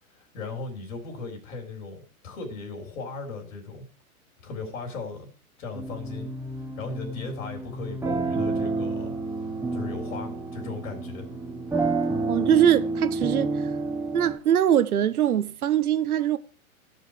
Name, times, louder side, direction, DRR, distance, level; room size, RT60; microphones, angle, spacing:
voice 1, 0.3-2.0 2.2-3.9 4.4-5.3 5.6-6.3 6.8-9.1 9.7-11.3, left 4 dB, 65° left, 3.6 m, -37 dB
sound 1, 5.7-14.4, right 3 dB, 5° right, 1.1 m, -29 dB
voice 2, 12.3-13.7 14.1-16.4, right 10 dB, 85° right, 0.8 m, -22 dB
14.5 x 5.5 x 4.7 m
hypercardioid pair, 125°, 43 cm